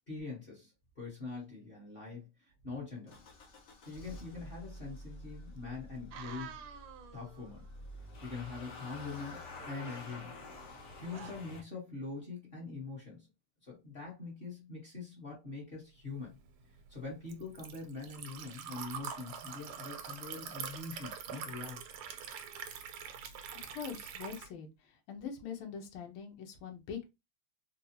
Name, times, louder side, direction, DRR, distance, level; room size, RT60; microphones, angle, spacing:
voice 1, 0.1-3.3 3.9-6.6 7.1-7.6 8.2-10.4 10.9-13.3 13.6-16.4 16.9-21.8, left 4 dB, 35° left, 1.1 m, -44 dB
Motor vehicle (road) / Engine starting, 3.1-11.6, left 2 dB, 60° left, 0.7 m, -49 dB
sound 1, 6.1-7.7 9.6-10.8 11.1-11.3, right 8 dB, 75° right, 1.2 m, -49 dB
Liquid, 16.2-24.5, right 8 dB, 90° right, 1.5 m, -44 dB
voice 2, 23.5-27.0, left 7 dB, 85° left, 1.7 m, -43 dB
4.2 x 2.3 x 2.7 m
omnidirectional pair, 2.3 m